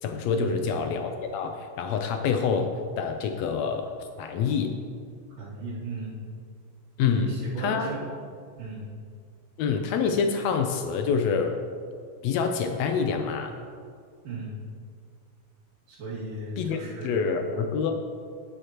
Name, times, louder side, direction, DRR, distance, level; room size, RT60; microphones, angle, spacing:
voice 1, 0.0-3.9 4.2-4.7 7.0-7.3 7.6-7.9 9.6-11.6 12.2-13.5 16.6-18.0, left 6 dB, 80° left, 5 dB, 1.6 m, -27 dB
voice 2, 5.4-6.2 7.0-8.0 8.6-8.9 14.2-14.5 15.9-17.3, right 3 dB, 80° right, -8 dB, 3.9 m, -35 dB
17.5 x 6.5 x 3.0 m, 2.1 s
omnidirectional pair, 3.7 m